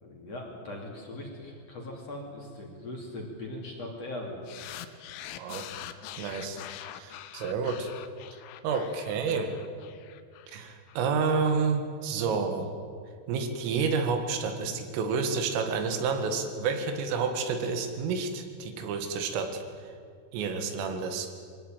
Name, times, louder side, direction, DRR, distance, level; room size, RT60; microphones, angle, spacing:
voice 1, 0.0-4.4, left 1 dB, 40° left, 0 dB, 3.3 m, -40 dB
sound 1, 4.5-11.0, left 12 dB, 85° left, 3.4 m, -44 dB
voice 2, 5.4-5.7 6.2-6.6 6.9-7.9 8.6-9.6 10.5-12.7 13.3-19.6 20.3-21.3, right 5 dB, 90° right, 6 dB, 4.4 m, -29 dB
23.0 x 17.5 x 9.0 m, 2.2 s
omnidirectional pair, 5.7 m